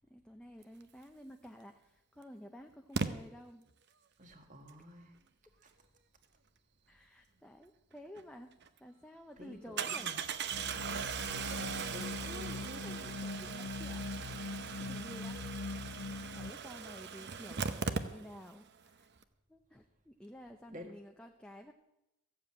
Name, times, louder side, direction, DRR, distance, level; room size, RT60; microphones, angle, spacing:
voice 1, 0.1-3.7 6.9-8.5 8.8-10.1 12.5-14.0 14.3-15.4 16.3-19.1 19.5-21.7, equal, 5° left, 3 dB, 0.6 m, -52 dB
Engine starting, 1.4-1.5 2.9-3.1 8.2-8.3 8.6-8.7 9.8-18.6 18.9-19.0 19.2-19.3, right 5 dB, 50° right, 0.8 m, -39 dB
voice 2, 4.2-5.1 9.4-10.2 10.9-12.8 20.7-20.9, left 1 dB, 35° right, 5 dB, 1.6 m, -50 dB
sound 1, 10.5-16.5, left 4 dB, 80° left, 0.5 m, -42 dB
14.5 x 7.5 x 8.6 m, 0.93 s
head